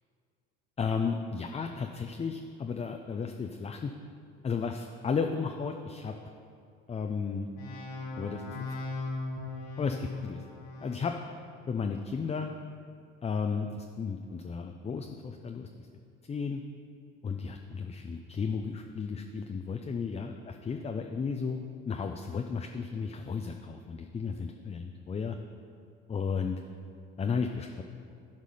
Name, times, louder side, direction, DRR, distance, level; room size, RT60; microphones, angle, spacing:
voice 1, 0.8-3.9 4.4-6.1 6.9-7.5 8.2-8.6 9.8-10.4 10.8-11.1 11.7-12.5 13.2-15.7 16.3-16.6 17.2-25.4 26.1-26.6 27.2-27.8, left 5 dB, 20° left, 4 dB, 0.5 m, -34 dB
sound 1, 7.6-11.2, left 2 dB, 80° left, 1.5 m, -38 dB
11.5 x 4.8 x 5.5 m, 2.3 s
hypercardioid pair, 75°, 30 cm